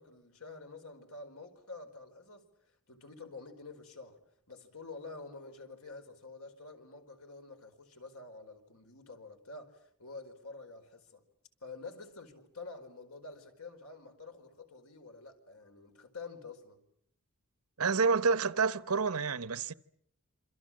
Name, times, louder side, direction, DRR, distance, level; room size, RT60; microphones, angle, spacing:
voice 1, 0.0-4.2 4.5-11.2 11.6-16.8, left 3 dB, 80° left, 4.9 m, -48 dB
voice 2, 17.8-19.7, right 4 dB, 90° right, 1.0 m, -28 dB
27.5 x 26.0 x 7.6 m
head